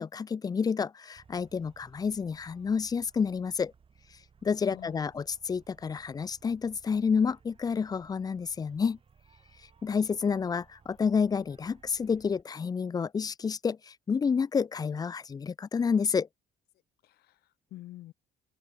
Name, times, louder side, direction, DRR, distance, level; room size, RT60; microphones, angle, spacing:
voice 1, 0.0-3.7 4.4-9.0 9.8-16.3, left 6 dB, 25° left, 0.4 m, -29 dB
sound 1, 1.1-12.4, right 6 dB, 30° right, 2.5 m, -61 dB
voice 2, 4.7-5.1 17.0-18.1, left 15 dB, 70° left, 0.9 m, -48 dB
open air
cardioid pair, 110°, 17 cm